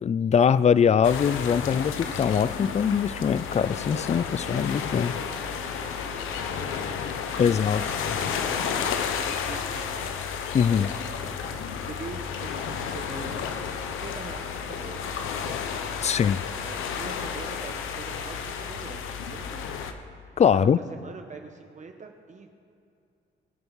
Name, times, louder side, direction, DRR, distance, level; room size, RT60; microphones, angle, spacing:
voice 1, 0.0-5.2 7.4-7.8 10.5-10.9 16.0-16.4 20.4-20.8, left 7 dB, 35° left, 0.5 m, -22 dB
sound 1, 1.0-19.9, left 7 dB, 90° left, 1.0 m, -32 dB
voice 2, 5.2-6.9 7.4-10.2 10.7-10.9 11.5-11.6 11.9-13.4 13.8-15.9 16.6-19.8 20.5-22.5, right 4 dB, 40° right, 1.2 m, -44 dB
23.0 x 7.9 x 5.5 m
cardioid pair, 90°, 20 cm